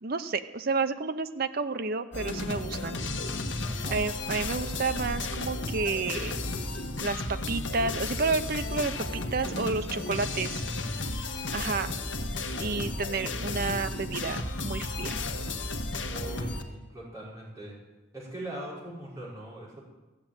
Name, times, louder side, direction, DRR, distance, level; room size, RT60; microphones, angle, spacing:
voice 1, 0.0-3.0 3.9-6.4 7.0-10.6 11.5-11.9 12.6-15.2, right 4 dB, 55° right, 9 dB, 0.7 m, -30 dB
sound 1, 2.1-16.6, left 2 dB, 75° left, 1.2 m, -33 dB
voice 2, 3.7-4.0 16.1-17.8 18.1-19.8, right 1 dB, 20° right, -7 dB, 5.7 m, -41 dB
14.5 x 7.4 x 8.9 m, 1.1 s
head